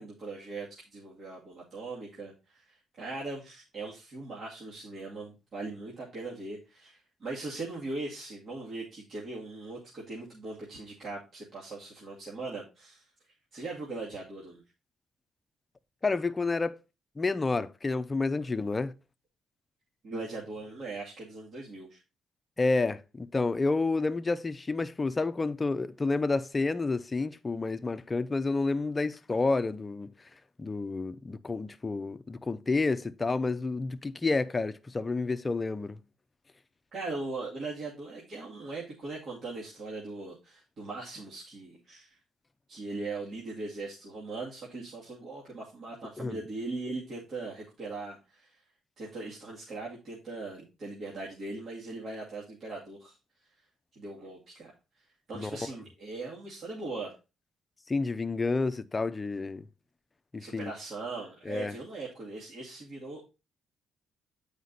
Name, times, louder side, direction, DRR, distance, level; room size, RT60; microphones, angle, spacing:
voice 1, 0.0-13.1 13.5-14.6 20.0-22.0 36.9-42.2 42.7-48.6 49.0-53.2 54.0-57.1 60.4-63.2, right 3 dB, 55° right, 2.3 m, -40 dB
voice 2, 16.0-16.8 17.2-18.9 22.6-30.1 30.6-36.0 46.2-46.4 55.3-55.6 57.9-59.7 60.3-60.7 61.5-61.7, left 3 dB, 25° left, 0.6 m, -30 dB
8.1 x 5.1 x 4.0 m
cardioid pair, 90°, 0 cm